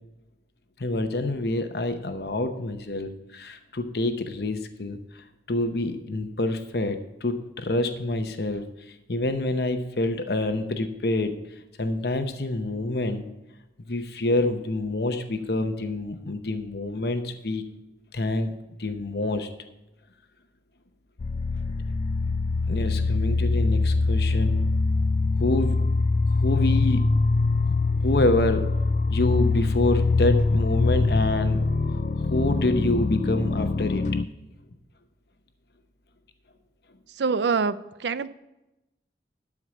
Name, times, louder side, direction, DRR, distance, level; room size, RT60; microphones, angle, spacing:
voice 1, 0.8-11.3 11.8-13.3 13.9-17.6 18.1-18.5 18.8-19.5 22.7-24.7 25.4-25.8 26.4-27.0 27.7-28.6 29.1-31.6 32.2-34.0, left 2 dB, 65° left, 7 dB, 0.8 m, -27 dB
sound 1, 21.2-34.2, left 3 dB, 40° left, 0.3 m, -23 dB
voice 2, 37.1-38.3, right 5 dB, 80° right, 15 dB, 0.5 m, -25 dB
12.5 x 4.9 x 7.2 m, 0.95 s
head